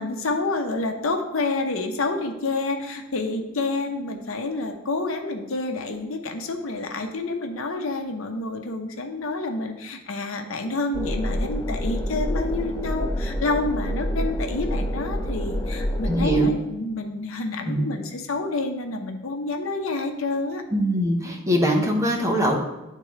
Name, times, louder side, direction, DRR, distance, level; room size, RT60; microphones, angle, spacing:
voice 1, 0.0-20.6, left 2 dB, 85° left, 5 dB, 0.7 m, -28 dB
sound 1, 10.9-16.4, equal, 15° left, 0.4 m, -27 dB
voice 2, 16.1-16.5 17.6-17.8 20.7-22.6, equal, 15° right, 1 dB, 0.8 m, -22 dB
10.0 x 3.7 x 3.1 m, 1.0 s
head